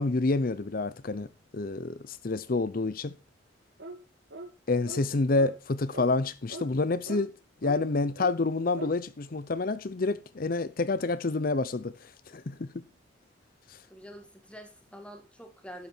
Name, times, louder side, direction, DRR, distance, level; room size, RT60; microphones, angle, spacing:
voice 1, 0.0-3.1 4.7-7.3 7.6-12.8 13.7-13.8, left 3 dB, 50° left, 0.6 m, -28 dB
sound 1, 3.8-4.0 4.3-4.5 4.8-5.0 5.3-5.5 5.9-6.1 6.5-6.7 7.0-7.2 7.6-7.8 8.2-8.4 8.7-8.9, right 2 dB, 70° right, 2.0 m, -41 dB
voice 2, 13.9-15.9, equal, 5° left, 2.2 m, -46 dB
12.5 x 8.5 x 4.4 m
head